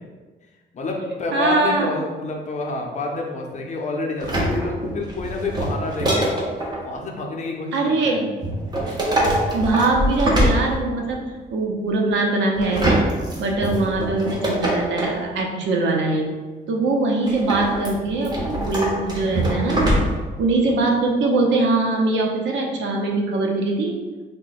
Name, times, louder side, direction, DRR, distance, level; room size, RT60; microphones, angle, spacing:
voice 1, 0.7-6.3 6.8-7.8 8.0-8.2, left 3 dB, 40° left, 1 dB, 0.6 m, -28 dB
voice 2, 1.3-1.9 7.7-8.3 9.5-13.1 13.4-16.3 16.7-19.8 20.4-23.9, right 2 dB, 85° right, 1 dB, 0.7 m, -22 dB
sound 1, 4.2-6.8 8.4-11.2 12.6-15.2 17.3-20.4 20.7-20.8, right 1 dB, 20° right, 0.8 m, -23 dB
3.7 x 2.2 x 4.0 m, 1.3 s
cardioid pair, 135°, 19 cm